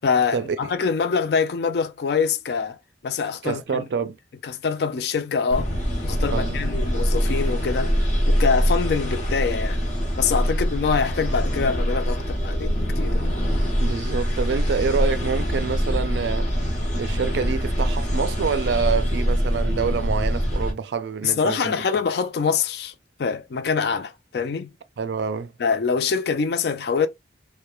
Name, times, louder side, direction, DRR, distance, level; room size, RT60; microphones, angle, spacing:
voice 1, 0.0-2.8 3.0-3.8 4.4-5.7 6.0-7.9 8.3-9.8 10.2-13.3 21.2-22.9 23.2-24.7 25.6-27.1, left 5 dB, 60° left, 0.4 m, -24 dB
voice 2, 3.4-4.2 6.3-6.6 13.8-16.5 17.0-21.7 25.0-25.5, right 5 dB, 70° right, 0.3 m, -26 dB
sound 1, 5.5-20.7, equal, 40° left, 1.0 m, -24 dB
3.0 x 2.2 x 2.3 m
head